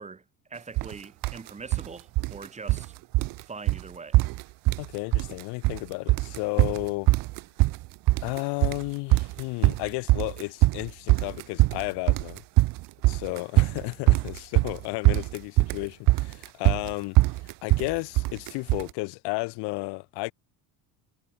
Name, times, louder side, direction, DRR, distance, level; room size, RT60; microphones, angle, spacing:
voice 1, 0.0-2.9 3.5-4.2, right 4 dB, 15° right, 3.9 m, -42 dB
sound 1, 0.8-0.9 1.2-1.9 2.2-2.9 3.1-3.4 3.7-3.8 4.1-4.9 5.1-5.8 6.1-18.9, right 20 dB, 60° right, 0.8 m, -22 dB
voice 2, 4.8-7.1 8.2-12.4 13.0-20.3, left 26 dB, 80° left, 3.9 m, -33 dB
cardioid pair, 145°, 39 cm